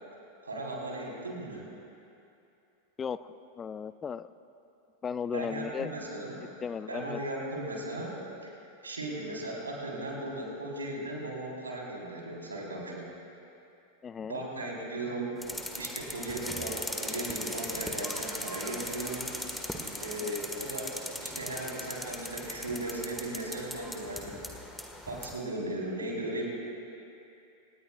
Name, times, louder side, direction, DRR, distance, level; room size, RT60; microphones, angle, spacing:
voice 1, 0.4-1.6 5.3-6.4 6.9-8.1 8.4-8.5 8.8-13.1 14.3-15.4 15.7-19.3 20.0-24.4 25.0-26.5, right 1 dB, 75° right, -3 dB, 4.1 m, -37 dB
voice 2, 3.0-4.3 5.0-5.9 6.6-7.2 14.0-14.4 20.2-20.3, left 6 dB, 20° left, 15 dB, 0.3 m, -36 dB
sound 1, 15.4-25.4, left 1 dB, 5° left, 1.6 m, -39 dB
26.0 x 19.0 x 2.5 m, 2.7 s
figure-of-eight pair, 90°, 0 cm